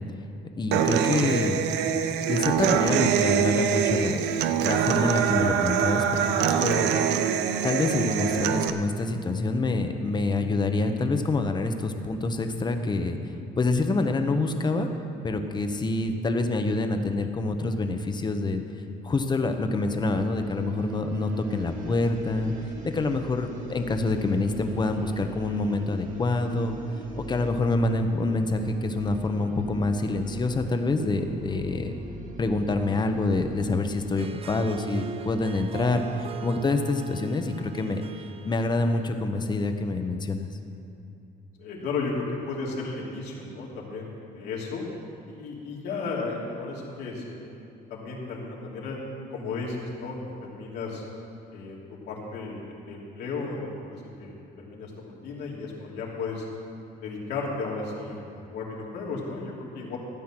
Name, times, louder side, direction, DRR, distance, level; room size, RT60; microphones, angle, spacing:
voice 1, 0.6-1.7 2.3-6.9 7.6-13.2 13.6-14.9 15.2-18.6 19.0-22.5 22.8-26.8 27.2-31.9 32.4-38.0 38.4-40.5, left 2 dB, 25° left, 6 dB, 1.0 m, -26 dB
Human voice / Acoustic guitar, 0.7-8.7, right 8 dB, 85° right, 0.7 m, -24 dB
sound 1, 19.5-33.8, right 3 dB, 50° right, 1.7 m, -42 dB
Harp, 34.0-39.5, right 8 dB, 35° right, 0.6 m, -40 dB
voice 2, 41.6-44.8 45.2-47.6 47.9-49.0 49.3-50.2 50.4-51.0 51.5-56.4 57.0-60.0, left 4 dB, 75° left, -4 dB, 2.9 m, -34 dB
14.5 x 8.4 x 6.1 m, 2.7 s
cardioid pair, 110°, 17 cm